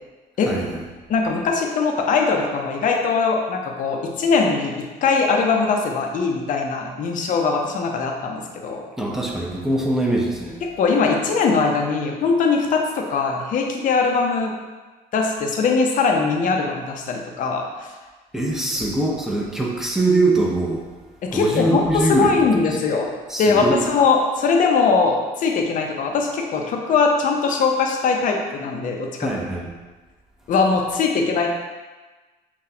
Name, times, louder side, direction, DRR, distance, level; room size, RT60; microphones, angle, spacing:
voice 1, 0.5-0.8 9.0-10.6 18.3-20.8 21.3-22.6 23.3-23.8 29.2-29.7, right 2 dB, 5° right, -3 dB, 0.7 m, -22 dB
voice 2, 1.1-4.7 5.0-8.8 10.8-14.5 15.1-17.9 21.2-23.1 23.4-29.3 30.5-31.5, left 4 dB, 50° left, 1 dB, 0.6 m, -21 dB
5.7 x 2.3 x 2.8 m, 1.3 s
cardioid pair, 110°, 17 cm